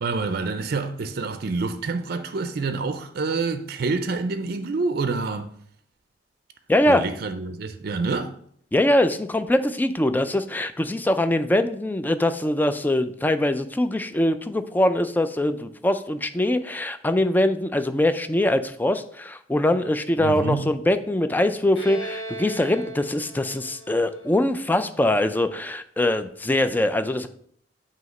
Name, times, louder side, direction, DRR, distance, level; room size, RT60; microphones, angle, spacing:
voice 1, 0.0-5.5 6.9-8.3 20.2-20.7, right 4 dB, 60° right, 0.5 m, -27 dB
voice 2, 6.7-7.1 8.7-27.3, left 1 dB, 10° left, 0.4 m, -23 dB
Bowed string instrument, 21.8-25.3, right 1 dB, 85° left, 1.4 m, -38 dB
7.9 x 2.8 x 5.2 m
head